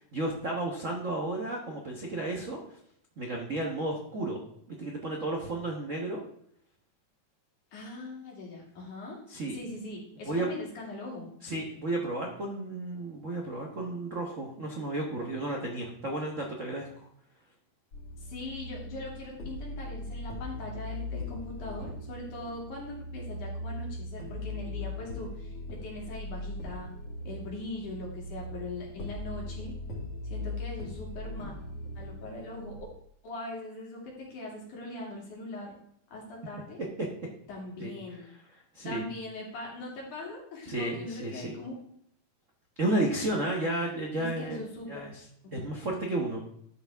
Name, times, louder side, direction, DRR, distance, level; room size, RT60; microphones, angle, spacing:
voice 1, 0.1-2.6 3.2-4.4 4.8-6.2 9.3-9.5 10.2-10.5 11.4-16.9 37.8-37.9 38.7-39.0 40.7-41.5 42.8-44.6 44.9-45.2 45.5-46.4, right 2 dB, 70° right, 0 dB, 0.7 m, -32 dB
voice 2, 7.7-9.2 9.5-11.3 18.2-26.9 27.2-29.7 30.2-31.5 32.0-32.8 33.2-35.7 36.1-36.8 37.5-38.2 38.8-41.8 44.2-45.0 45.4-45.5, left 2 dB, 85° left, -2 dB, 4.1 m, -41 dB
sound 1, 17.9-32.8, left 2 dB, 50° left, 2.8 m, -39 dB
12.0 x 6.8 x 3.5 m, 0.69 s
omnidirectional pair, 3.5 m